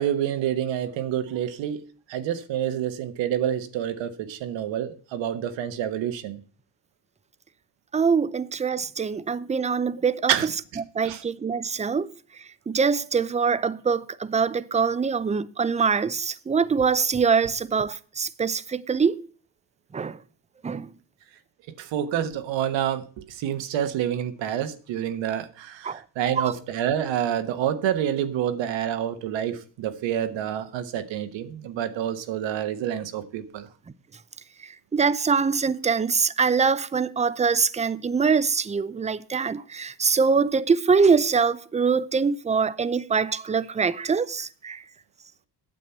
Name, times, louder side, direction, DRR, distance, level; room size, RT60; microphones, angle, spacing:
voice 1, 0.0-6.4 10.3-10.5 11.0-11.2 21.8-33.7, right 10 dB, 85° right, 1.3 m, -28 dB
voice 2, 7.9-10.3 10.8-12.1 12.7-19.2 19.9-20.2 20.6-20.9 25.8-26.0 26.2-26.5 34.9-44.8, right 5 dB, 15° right, 0.5 m, -23 dB
9.3 x 7.7 x 5.6 m
cardioid pair, 105°, 44 cm